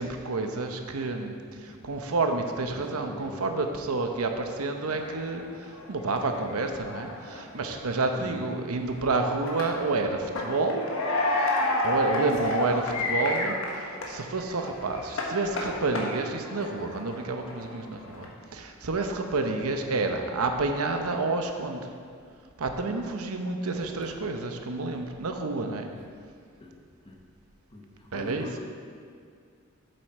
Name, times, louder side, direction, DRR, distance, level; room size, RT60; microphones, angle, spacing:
voice 1, 0.0-10.8 11.3-11.5 11.8-21.9 22.6-25.9 28.1-28.5, right 3 dB, 85° right, 5 dB, 0.8 m, -29 dB
voice 2, 2.6-3.5 4.8-5.0 8.1-8.4 12.9-13.1 25.9-26.0 26.6-26.8 27.0-27.2 27.7-28.6, left 2 dB, 25° left, 0 dB, 1.0 m, -44 dB
sound 1, 4.9-14.2 14.4-18.2, left 2 dB, 65° left, 1.3 m, -31 dB
7.8 x 7.6 x 4.5 m, 2.2 s
head